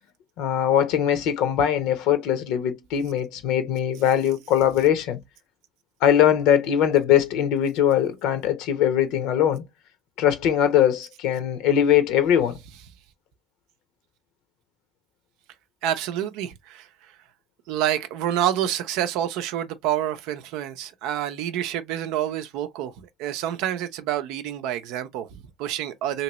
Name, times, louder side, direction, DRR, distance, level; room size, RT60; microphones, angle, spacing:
voice 1, 0.4-5.2 6.0-9.6 10.2-12.6, left 10 dB, 70° left, 0.9 m, -21 dB
voice 2, 15.8-16.9 17.7-26.2, right 11 dB, 70° right, 0.5 m, -28 dB
3.0 x 2.9 x 2.9 m
hypercardioid pair, 70°, 0 cm